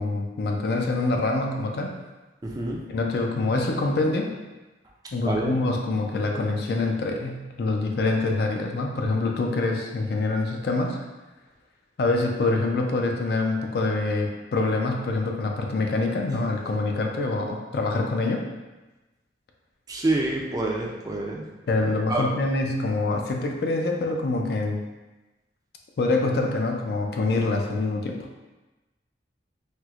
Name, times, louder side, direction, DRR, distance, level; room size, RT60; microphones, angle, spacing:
voice 1, 0.0-2.0 2.9-4.4 5.1-11.0 12.0-18.5 21.7-24.8 26.0-28.3, left 2 dB, 60° left, 2 dB, 0.4 m, -25 dB
voice 2, 2.4-2.8 5.2-5.6 19.9-21.5 21.8-22.3, right 2 dB, 20° right, -1 dB, 0.3 m, -27 dB
4.3 x 2.0 x 2.4 m, 1.1 s
head